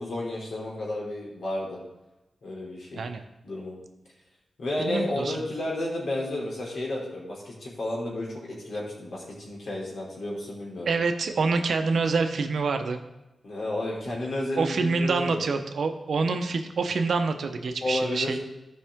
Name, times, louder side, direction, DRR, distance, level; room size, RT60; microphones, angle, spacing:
voice 1, 0.0-1.8 2.4-3.0 3.4-3.8 4.6-10.9 13.4-15.4 17.8-18.3, left 1 dB, 70° left, -4 dB, 3.2 m, -32 dB
voice 2, 4.8-5.4 10.9-13.0 14.6-18.4, right 4 dB, 75° right, 6 dB, 0.9 m, -26 dB
14.0 x 5.6 x 3.7 m, 0.99 s
wide cardioid pair, 100°, 0 cm